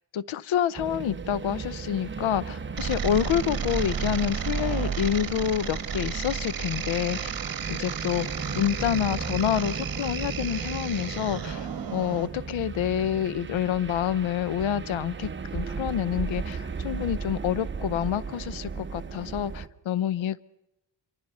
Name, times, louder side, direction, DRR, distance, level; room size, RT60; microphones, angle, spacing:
voice 1, 0.1-7.3 7.7-8.3 8.5-11.7 11.9-20.4, left 10 dB, 85° left, 0.8 m, -28 dB
sound 1, 0.7-19.7, right 5 dB, 25° right, 1.0 m, -36 dB
sound 2, 2.8-12.3, right 7 dB, 50° right, 1.8 m, -32 dB
27.0 x 24.0 x 5.6 m
wide cardioid pair, 140°, 46 cm